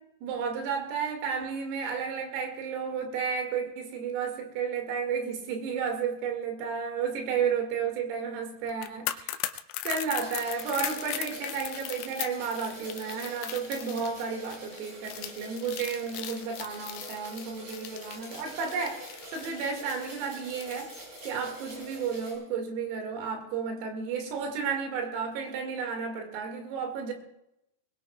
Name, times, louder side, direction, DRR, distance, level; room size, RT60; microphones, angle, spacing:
voice 1, 0.2-9.4 9.8-20.9 21.2-27.1, right 6 dB, 85° right, 4.8 m, -32 dB
sound 1, 8.7-21.8 22.1-22.3, left 14 dB, 80° left, 2.8 m, -39 dB
sound 2, 10.1-22.3, right 1 dB, 60° right, 8.9 m, -46 dB
21.5 x 21.0 x 2.3 m
omnidirectional pair, 6.0 m